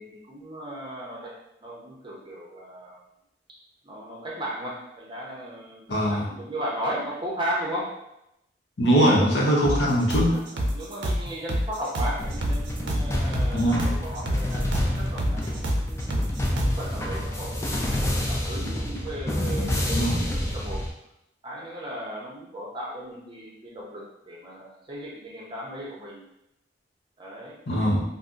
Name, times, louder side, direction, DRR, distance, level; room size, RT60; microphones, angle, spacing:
voice 1, 0.0-1.3 1.6-3.0 3.8-7.9 9.0-9.5 10.3-16.0 16.6-20.8 21.4-26.2 27.2-27.6, right 1 dB, 25° right, -4 dB, 0.6 m, -36 dB
voice 2, 5.9-6.2 8.8-10.4 13.5-13.8 19.9-20.2 27.7-28.0, equal, 70° left, -3 dB, 0.8 m, -21 dB
sound 1, 9.6-16.9, equal, 75° right, 0.5 m, -28 dB
sound 2, 12.2-20.9, left 1 dB, 15° left, 0.3 m, -28 dB
2.6 x 2.0 x 3.6 m, 0.85 s
head